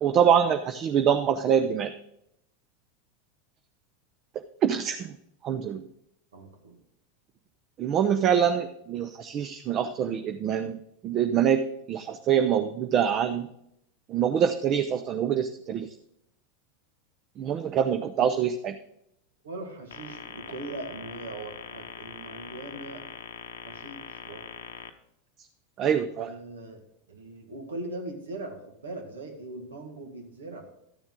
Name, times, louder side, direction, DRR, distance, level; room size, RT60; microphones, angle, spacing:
voice 1, 0.0-1.9 4.6-5.1 5.4-5.9 7.8-13.5 14.1-15.9 17.4-18.7 25.8-26.3, right 8 dB, 40° right, 8 dB, 0.6 m, -25 dB
voice 2, 6.3-6.8 19.4-23.0 23.6-24.5 26.2-26.8 27.1-30.6, right 2 dB, 85° right, 4 dB, 1.8 m, -40 dB
sound 1, 19.9-24.9, left 8 dB, 80° left, 0.8 m, -42 dB
13.0 x 7.1 x 3.8 m, 0.77 s
hypercardioid pair, 95°, 0 cm